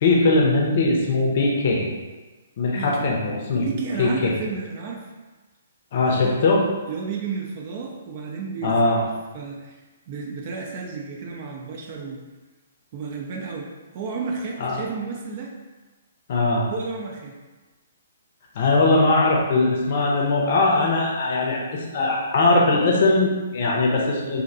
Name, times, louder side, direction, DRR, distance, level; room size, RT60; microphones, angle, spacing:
voice 1, 0.0-1.9 2.6-3.7 4.0-4.4 5.9-6.7 8.6-9.0 14.6-14.8 16.3-16.7 18.5-24.4, left 2 dB, 50° left, -1 dB, 0.6 m, -20 dB
voice 2, 2.7-3.2 3.6-5.0 6.1-6.4 6.9-12.2 12.9-15.5 16.7-17.4, right 5 dB, 40° right, -1 dB, 0.4 m, -32 dB
2.6 x 2.1 x 2.5 m, 1.2 s
figure-of-eight pair, 125°, 0 cm